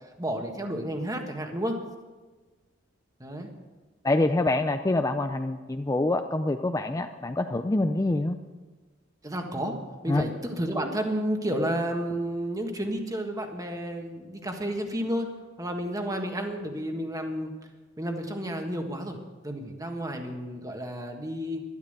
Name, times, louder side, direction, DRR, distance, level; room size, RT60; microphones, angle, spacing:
voice 1, 0.2-1.8 3.2-3.5 9.2-9.8 10.0-15.3 15.6-17.5 18.0-19.2 19.4-21.6, equal, 15° right, 3 dB, 1.5 m, -31 dB
voice 2, 4.0-8.4 10.1-10.3, left 2 dB, 15° left, 7 dB, 0.4 m, -25 dB
12.5 x 12.0 x 6.6 m, 1.3 s
head